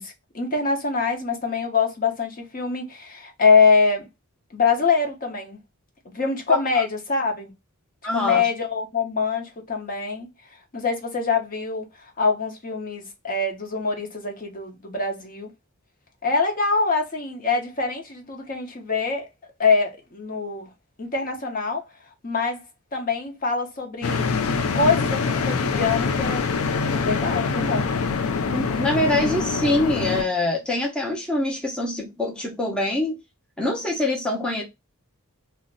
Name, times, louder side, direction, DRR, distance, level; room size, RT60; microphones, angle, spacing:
voice 1, 0.0-4.1 4.5-5.6 6.0-7.5 8.1-10.3 10.7-15.5 16.2-20.7 21.0-21.9 22.2-22.6 22.9-24.2 24.7-26.5 27.0-27.9, left 4 dB, 40° left, 0.8 m, -24 dB
voice 2, 8.0-8.5 28.5-33.2 33.6-34.6, left 1 dB, 5° left, 0.6 m, -24 dB
sound 1, 24.0-30.2, left 5 dB, 70° left, 0.5 m, -24 dB
2.5 x 2.1 x 3.8 m
head